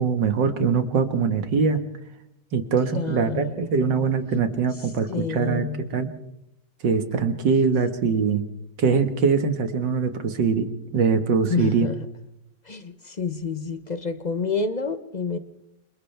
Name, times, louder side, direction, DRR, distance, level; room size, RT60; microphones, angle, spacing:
voice 1, 0.0-1.8 2.5-6.1 6.8-8.4 8.8-11.9, right 5 dB, 80° right, 8 dB, 2.2 m, -22 dB
voice 2, 2.9-3.7 5.1-5.9 11.5-12.0 12.7-15.4, left 5 dB, 35° left, 10 dB, 0.7 m, -28 dB
29.0 x 26.0 x 3.5 m, 0.82 s
omnidirectional pair, 1.9 m